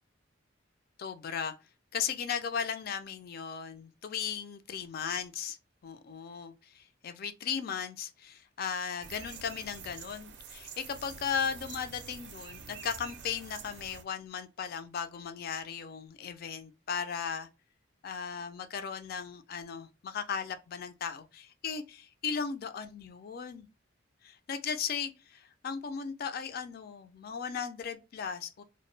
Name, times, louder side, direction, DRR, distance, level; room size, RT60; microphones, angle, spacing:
voice 1, 1.0-1.5 1.9-5.6 5.8-17.5 18.0-23.7 24.2-28.6, left 7 dB, 50° left, 0.3 m, -37 dB
sound 1, 9.0-14.0, right 6 dB, 55° right, 0.4 m, -47 dB
2.2 x 2.0 x 3.0 m
head